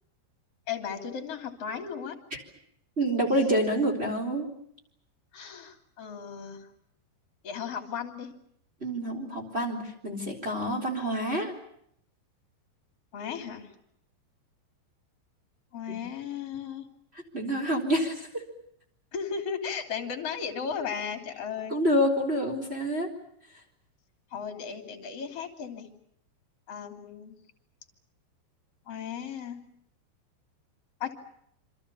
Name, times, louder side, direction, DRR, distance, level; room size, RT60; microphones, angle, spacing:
voice 1, 0.7-2.2 5.3-6.7 7.4-8.3 13.1-13.7 15.7-16.9 19.1-21.8 24.3-25.9 26.7-27.3 28.9-29.7 31.0-31.2, left 7 dB, 35° left, 5 dB, 3.3 m, -35 dB
voice 2, 3.0-4.5 8.8-9.8 10.0-11.5 15.9-16.0 17.3-18.3 21.7-23.1, equal, 15° right, 2 dB, 3.4 m, -27 dB
27.0 x 26.5 x 7.0 m, 0.72 s
omnidirectional pair, 5.4 m